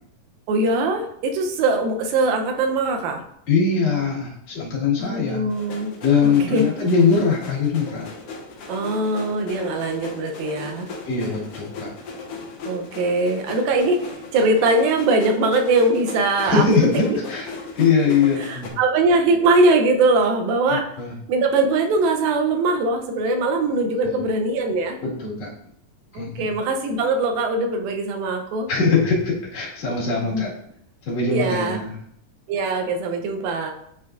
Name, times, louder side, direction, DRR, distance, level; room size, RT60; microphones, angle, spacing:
voice 1, 0.5-3.2 5.0-5.9 6.2-6.7 8.7-10.9 12.7-14.0 14.3-16.8 17.1-17.2 18.4-20.8 21.3-25.0 26.1-28.7 30.3-30.4 31.3-31.8 32.5-33.7, right 2 dB, 80° right, 4 dB, 2.5 m, -21 dB
voice 2, 3.5-5.4 6.0-8.1 11.1-11.9 16.4-17.5 17.8-18.7 20.7-21.1 24.0-24.2 25.0-25.5 26.1-26.5 28.7-30.5 31.1-31.9, left 5 dB, 55° left, -5 dB, 3.0 m, -21 dB
sound 1, 5.5-18.7, left 3 dB, 75° left, 1.4 m, -37 dB
9.2 x 4.4 x 2.5 m, 0.70 s
omnidirectional pair, 4.2 m